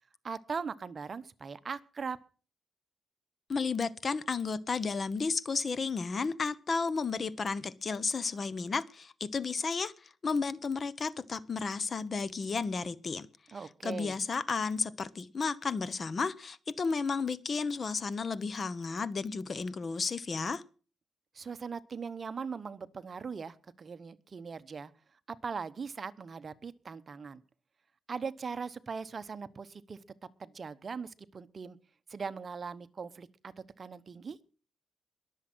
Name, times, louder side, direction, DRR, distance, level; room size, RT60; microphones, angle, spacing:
voice 1, 0.2-2.2 13.5-14.2 21.3-24.9 25.3-27.4 28.1-30.0 30.4-31.8 32.1-34.4, right 5 dB, 45° right, 0.9 m, -40 dB
voice 2, 3.5-9.9 10.2-13.3 13.8-20.6, left 4 dB, 40° left, 0.9 m, -33 dB
21.5 x 7.5 x 6.1 m
cardioid pair, 105°, 0 cm